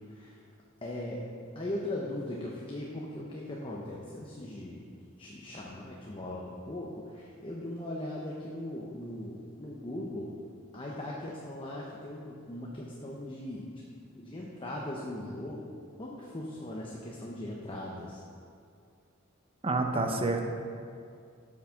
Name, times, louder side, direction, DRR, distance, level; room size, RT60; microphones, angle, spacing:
voice 1, 0.1-0.4 0.8-1.2 1.5-4.8 5.2-10.3 10.7-13.7 14.1-18.2, left 1 dB, 25° left, -3 dB, 0.8 m, -39 dB
voice 2, 19.6-20.4, right 2 dB, 25° right, 4 dB, 0.8 m, -28 dB
8.1 x 6.0 x 6.4 m, 2.3 s
head